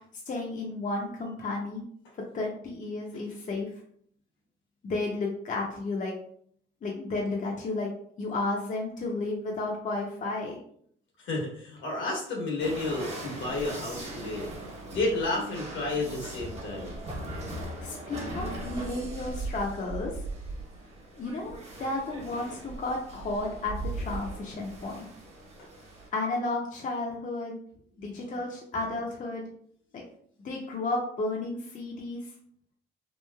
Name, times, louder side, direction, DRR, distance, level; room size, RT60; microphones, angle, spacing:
voice 1, 0.3-1.8 2.3-3.7 4.8-6.1 6.8-10.6 17.8-20.2 21.2-25.1 26.1-27.6 28.0-29.5 29.9-30.0 30.4-32.3, left 2 dB, 40° left, -1 dB, 0.6 m, -32 dB
voice 2, 11.2-14.5 14.9-17.0, left 2 dB, 75° left, -1 dB, 1.2 m, -31 dB
sound 1, 12.6-26.1, right 2 dB, 30° right, 1.0 m, -39 dB
3.0 x 2.5 x 2.2 m, 0.63 s
cardioid pair, 90°, 20 cm